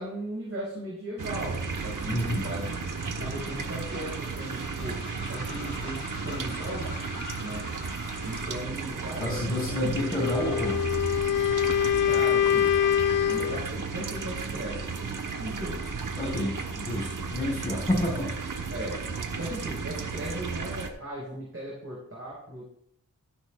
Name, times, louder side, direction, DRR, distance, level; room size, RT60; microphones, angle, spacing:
voice 1, 0.0-2.7 3.2-5.0 5.3-7.0 7.4-7.7 8.2-10.0 12.0-12.7 13.3-15.1 15.4-16.2 18.7-19.0 19.3-22.7, right 1 dB, 45° right, -5 dB, 4.7 m, -37 dB
sound 1, 1.2-20.9, right 4 dB, 80° right, 1.1 m, -34 dB
Train, 1.7-8.7, left 3 dB, 35° left, 2.8 m, -44 dB
voice 2, 2.1-2.4 9.2-10.8 16.2-18.3, left 1 dB, 15° left, -6 dB, 4.7 m, -29 dB
Wind instrument woodwind instrument, 10.1-13.7, left 10 dB, 80° left, 0.5 m, -24 dB
14.0 x 10.5 x 2.4 m, 0.69 s
wide cardioid pair, 80°, 31 cm